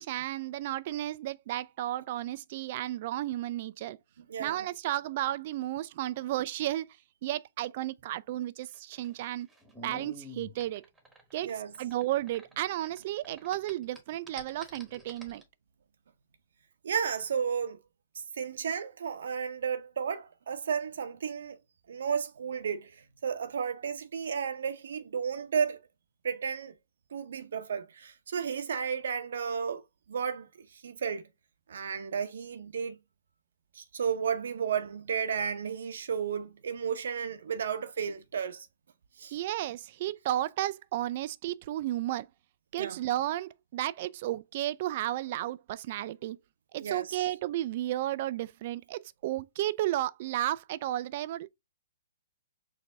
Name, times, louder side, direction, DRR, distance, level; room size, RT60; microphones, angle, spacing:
voice 1, 0.0-4.0 4.4-6.9 7.2-9.5 9.8-10.8 11.3-15.4 39.3-42.3 42.7-46.4 46.7-51.5, right 14 dB, 45° right, 0.3 m, -33 dB
voice 2, 4.2-4.6 11.4-11.7 16.8-17.8 18.4-21.6 21.9-25.8 26.2-26.7 27.1-29.8 30.1-31.2 31.7-33.0 33.7-38.7 39.2-39.3 42.8-43.0 46.8-47.3, right 7 dB, 70° right, 0.7 m, -33 dB
sound 1, 8.6-13.0 13.2-15.4, equal, 5° right, 1.2 m, -49 dB
4.6 x 2.6 x 3.3 m
hypercardioid pair, 130°, 0 cm